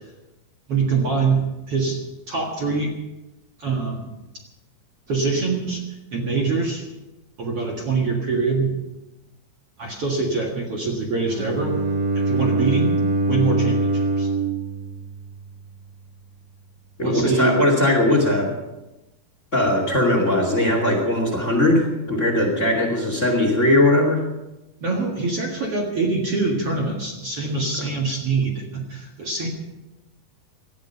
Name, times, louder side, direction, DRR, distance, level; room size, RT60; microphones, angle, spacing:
voice 1, 0.7-2.0 2.3-2.9 3.6-4.1 5.1-5.8 6.1-6.8 7.4-8.7 9.8-11.8 12.1-13.0 13.3-14.3 17.0-17.6 24.8-29.5, right 4 dB, 50° right, 0 dB, 2.3 m, -24 dB
Bowed string instrument, 11.3-15.4, right 2 dB, 70° right, 3.3 m, -23 dB
voice 2, 17.0-18.5 19.5-24.2, left 1 dB, 25° left, 2 dB, 2.4 m, -19 dB
18.5 x 13.0 x 5.6 m, 1.0 s
omnidirectional pair, 4.2 m